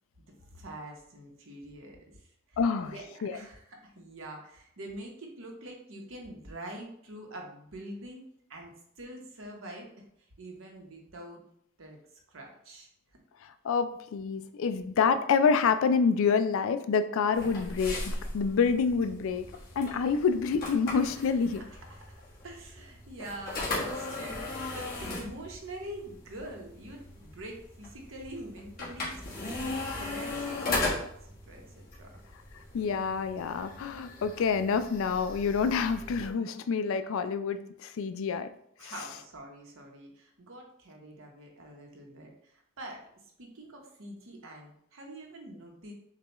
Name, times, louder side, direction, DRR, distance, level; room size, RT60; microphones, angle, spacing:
voice 1, 0.4-3.0 3.3-8.2 8.5-9.9 10.4-11.4 11.8-12.0 12.3-12.9 22.4-32.1 38.8-43.0 43.4-45.9, right 1 dB, 65° right, 1 dB, 1.0 m, -45 dB
voice 2, 2.6-2.9 3.2-3.4 13.4-21.6 30.7-30.8 32.7-38.5 38.8-38.9, left 5 dB, 65° left, 11 dB, 0.3 m, -27 dB
sound 1, 17.3-36.3, left 2 dB, 45° left, 1.5 m, -38 dB
6.6 x 2.3 x 3.0 m, 0.69 s
head